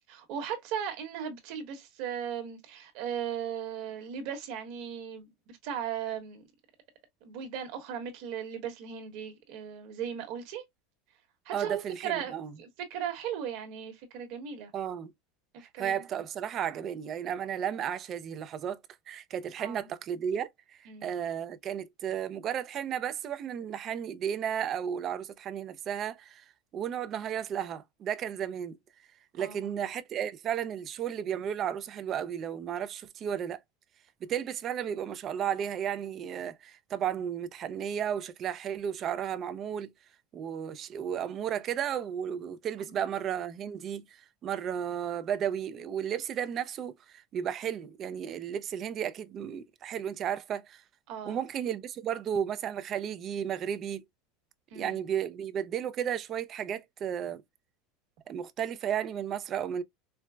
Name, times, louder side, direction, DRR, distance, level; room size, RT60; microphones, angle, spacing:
voice 1, 0.1-6.4 7.2-10.6 11.4-14.7 15.7-16.0 19.6-19.8 20.9-21.1 29.4-29.7 42.9-43.0 51.1-51.4 54.7-55.0, right 8 dB, 50° right, 1.1 m, -37 dB
voice 2, 11.5-12.5 14.7-15.1 15.6-18.8 19.1-26.4 26.7-28.8 29.3-33.6 34.2-39.9 40.3-50.8 51.2-54.0 54.7-57.4 58.3-59.8, right 9 dB, 25° right, 0.4 m, -33 dB
4.4 x 2.0 x 2.2 m
supercardioid pair, 175°, 0 cm